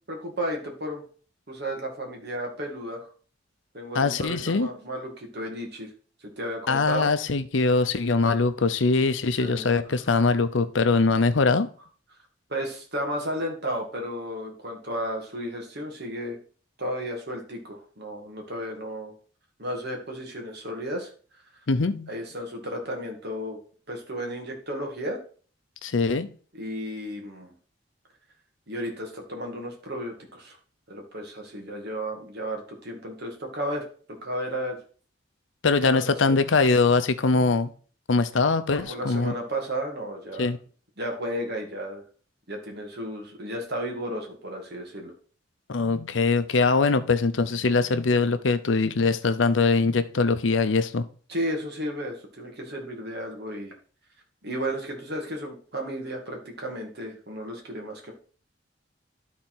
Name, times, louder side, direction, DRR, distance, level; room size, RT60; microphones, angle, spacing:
voice 1, 0.1-1.0 1.5-3.1 3.7-5.9 6.4-7.1 9.4-9.8 12.5-16.4 16.8-19.1 19.6-21.1 22.1-23.6 23.9-25.2 26.5-27.5 28.7-30.6 30.9-34.8 35.8-36.4 38.7-40.5 41.0-42.0 42.5-45.1 51.3-53.7 54.4-58.1, equal, 60° right, 2 dB, 2.2 m, -33 dB
voice 2, 3.9-4.7 6.7-11.7 21.7-22.1 25.8-26.3 35.6-37.7 38.1-39.3 40.4-40.6 45.7-51.0, left 4 dB, 90° left, 11 dB, 0.7 m, -22 dB
12.0 x 4.2 x 4.5 m, 0.42 s
head